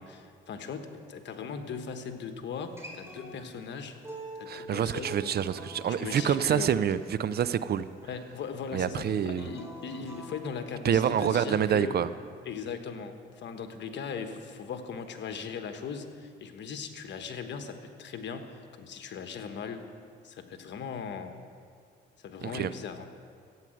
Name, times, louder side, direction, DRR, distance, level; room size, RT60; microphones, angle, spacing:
voice 1, 0.0-4.0 4.4-5.2 5.9-6.7 8.1-11.9 12.4-19.8 20.2-21.4 22.2-23.1, left 6 dB, 65° left, 1.3 m, -39 dB
Acoustic guitar, 2.6-7.8 9.3-10.6, right 1 dB, 15° right, 4.0 m, -45 dB
voice 2, 4.5-7.9 8.7-9.5 10.8-12.1 22.4-22.7, right 9 dB, 55° right, 0.6 m, -27 dB
14.0 x 9.1 x 7.8 m
cardioid pair, 90°, 20 cm